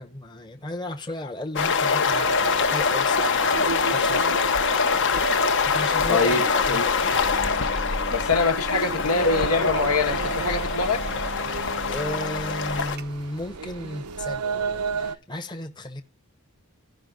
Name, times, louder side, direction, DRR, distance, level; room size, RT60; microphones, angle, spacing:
voice 1, 0.0-3.4 3.9-4.3 5.7-6.8 11.9-16.0, left 1 dB, 20° left, 1.0 m, -34 dB
sound 1, 1.6-13.0, left 5 dB, 55° left, 1.0 m, -24 dB
sound 2, 2.1-15.2, right 5 dB, 90° right, 0.9 m, -33 dB
sound 3, 5.2-5.4 5.8-6.4 6.7-6.8 7.1-13.4, right 5 dB, 45° right, 0.6 m, -41 dB
voice 2, 6.1-6.4 6.7-6.8 8.1-11.0, left 4 dB, 80° left, 1.4 m, -24 dB
15.5 x 5.7 x 3.8 m
head